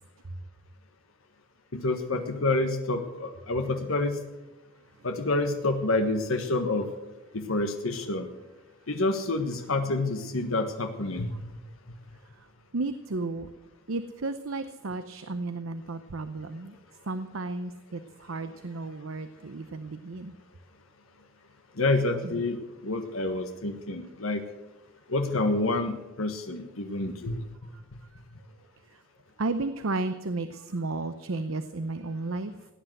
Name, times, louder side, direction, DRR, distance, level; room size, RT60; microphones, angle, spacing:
voice 1, 1.7-4.2 5.0-6.9 7.3-8.3 8.9-11.3 21.8-22.6 22.8-24.4 25.1-27.4, left 2 dB, 85° left, 5 dB, 1.5 m, -28 dB
voice 2, 12.7-13.5 13.9-16.8 17.1-20.3 22.2-22.4 23.8-24.1 29.4-32.5, right 3 dB, 75° right, 11 dB, 0.8 m, -33 dB
17.5 x 10.0 x 7.9 m, 1.1 s
head